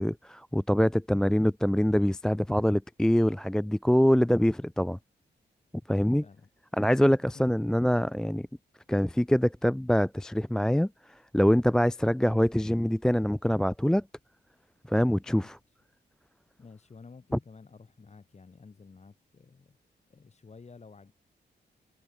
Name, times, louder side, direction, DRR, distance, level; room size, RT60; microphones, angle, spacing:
voice 1, 0.0-5.0 5.9-6.2 6.8-8.5 8.9-14.0 14.9-15.5, equal, 5° left, 0.4 m, -24 dB
voice 2, 16.6-19.8 20.1-21.1, left 4 dB, 40° left, 4.7 m, -51 dB
cardioid pair, 95°, 18 cm